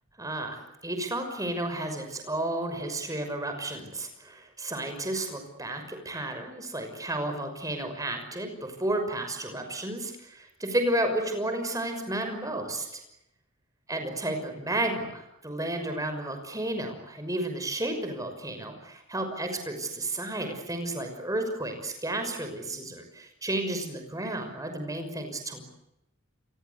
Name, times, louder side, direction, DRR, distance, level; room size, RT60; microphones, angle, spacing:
voice 1, 0.2-12.9 13.9-25.7, right 1 dB, 15° right, 6 dB, 5.9 m, -32 dB
29.5 x 24.0 x 8.3 m, 0.87 s
head